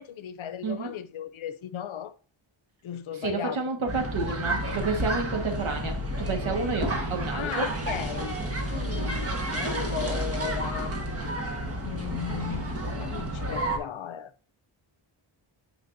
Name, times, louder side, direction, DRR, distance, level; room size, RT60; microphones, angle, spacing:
voice 1, 0.0-2.1 2.8-3.6 7.3-8.4 8.7-10.9 11.2-11.3 11.7-14.3, left 9 dB, 75° left, 0.7 m, -36 dB
voice 2, 0.6-0.9 3.2-7.7, right 4 dB, 75° right, 1.7 m, -30 dB
sound 1, 3.9-13.8, right 1 dB, 30° right, 1.4 m, -31 dB
9.2 x 5.1 x 2.6 m
wide cardioid pair, 115°, 48 cm